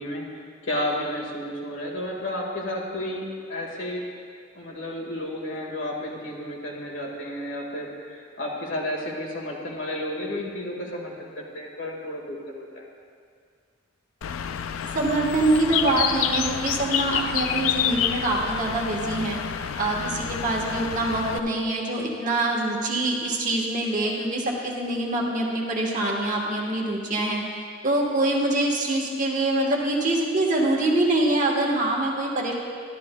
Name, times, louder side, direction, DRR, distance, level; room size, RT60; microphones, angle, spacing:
voice 1, 0.0-4.0 4.5-12.9, left 1 dB, 70° left, -2 dB, 1.8 m, -32 dB
Bird, 14.2-21.4, left 8 dB, 85° left, 0.4 m, -28 dB
voice 2, 14.9-19.4 19.8-27.4 27.8-32.5, right 2 dB, 40° right, -1 dB, 1.3 m, -24 dB
12.5 x 11.5 x 2.3 m, 2.2 s
head